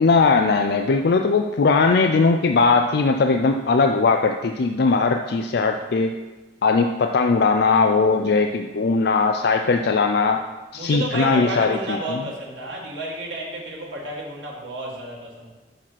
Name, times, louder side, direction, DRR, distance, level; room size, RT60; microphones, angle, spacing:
voice 1, 0.0-6.1 6.6-10.4 10.7-12.0, left 4 dB, 65° left, 5 dB, 0.4 m, -19 dB
voice 2, 10.7-15.5, right 1 dB, 90° right, -4 dB, 2.0 m, -31 dB
6.6 x 6.1 x 5.8 m, 1.2 s
head